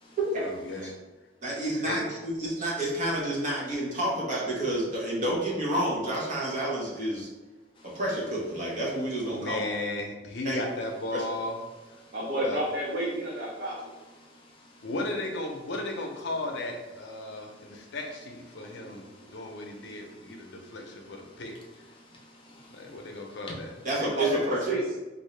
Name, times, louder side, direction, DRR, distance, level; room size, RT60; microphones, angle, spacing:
voice 1, 0.4-0.9 1.8-2.0 9.3-11.5 12.4-12.6 14.8-19.0 19.3-21.5 22.7-23.7, left 2 dB, 60° left, 0.6 m, -35 dB
voice 2, 1.4-7.3 7.8-9.6 10.4-10.6 11.1-11.3 23.8-24.8, right 1 dB, 40° right, 1.1 m, -29 dB
voice 3, 12.1-13.8 18.6-18.9 24.0-24.8, right 1 dB, 60° right, 0.6 m, -31 dB
voice 4, 14.2-14.8 17.2-17.8 18.5-19.5 20.0-20.8 21.3-23.0 23.3-23.6, left 1 dB, 25° left, 0.7 m, -51 dB
3.6 x 2.6 x 3.2 m
head